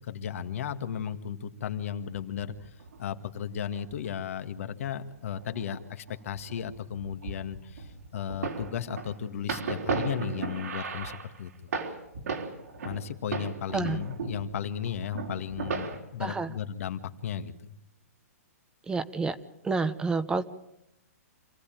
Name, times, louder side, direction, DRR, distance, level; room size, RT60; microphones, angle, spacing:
voice 1, 0.0-11.5 12.8-17.7, left 8 dB, 65° left, 8 dB, 1.8 m, -35 dB
sound 1, 2.1-3.0 3.7-4.1 5.0-5.8 6.1-13.0 13.3-14.6 14.9-16.0, right 4 dB, 80° right, 4.5 m, -36 dB
voice 2, 13.7-14.0 16.2-16.5 18.9-19.4 19.6-20.4, right 4 dB, 10° right, 12 dB, 0.9 m, -29 dB
26.5 x 15.5 x 9.0 m, 0.81 s
hypercardioid pair, 135°, 8 cm